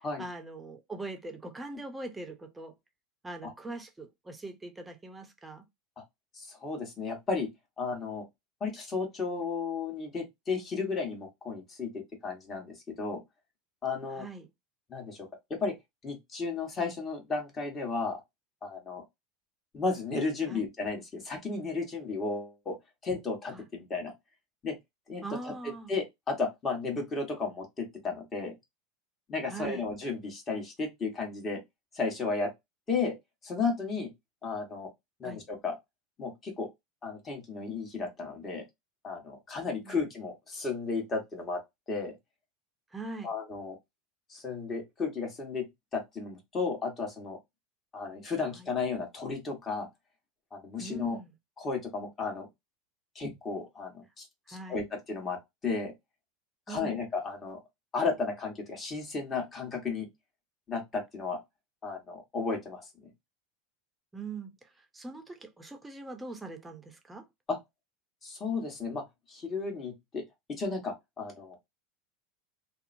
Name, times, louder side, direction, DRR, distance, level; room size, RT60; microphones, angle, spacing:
voice 1, 0.2-2.7 3.2-5.6 14.1-14.5 20.5-20.6 23.5-23.6 25.2-25.9 29.5-29.8 35.2-35.4 39.8-40.0 42.9-43.3 48.5-48.7 50.8-51.3 54.5-54.8 56.7-57.0 64.1-67.2, right 3 dB, 10° right, 0.7 m, -42 dB
voice 2, 6.3-7.5 7.8-8.2 8.6-13.2 13.8-14.3 14.9-15.7 16.0-18.2 18.6-19.0 19.7-22.8 23.0-24.1 24.6-24.8 25.1-28.5 29.3-31.6 31.9-32.5 32.9-33.1 33.4-34.1 34.4-34.9 35.2-35.7 36.2-36.7 37.0-38.6 39.0-41.6 41.9-42.1 43.2-43.8 44.3-45.7 45.9-47.4 47.9-49.9 50.5-51.2 51.6-52.5 53.1-55.4 55.6-55.9 56.7-57.6 57.9-60.1 60.7-61.4 61.8-63.1 67.5-67.6 68.2-69.0 69.3-70.2 70.5-71.6, left 4 dB, 30° left, 1.3 m, -34 dB
2.7 x 2.1 x 2.6 m
hypercardioid pair, 100°, 0 cm